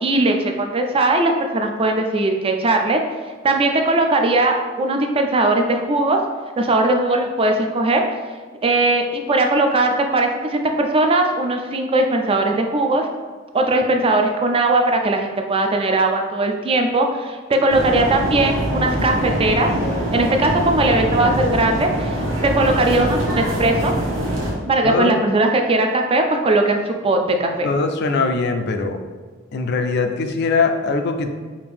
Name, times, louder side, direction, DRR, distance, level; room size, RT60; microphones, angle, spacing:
voice 1, 0.0-3.0 3.4-6.2 6.6-8.0 8.6-13.1 13.5-19.7 20.1-23.9 24.7-27.7, right 2 dB, 25° right, 4 dB, 0.4 m, -19 dB
sound 1, 17.7-24.5, right 1 dB, 70° right, 1.1 m, -23 dB
voice 2, 24.8-25.2 27.6-29.0 29.5-31.3, left 4 dB, 55° left, 6 dB, 0.4 m, -21 dB
5.0 x 2.6 x 3.4 m, 1.5 s
head